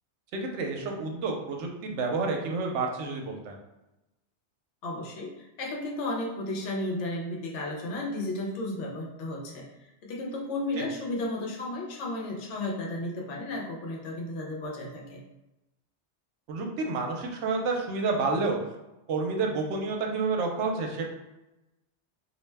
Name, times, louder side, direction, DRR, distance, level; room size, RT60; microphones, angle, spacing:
voice 1, 0.3-3.6 10.8-10.9 16.5-18.6 19.1-21.1, right 3 dB, 80° right, 2 dB, 0.9 m, -29 dB
voice 2, 4.8-15.2, left 2 dB, 75° left, -1 dB, 0.9 m, -34 dB
2.5 x 2.1 x 3.2 m, 0.97 s
omnidirectional pair, 1.2 m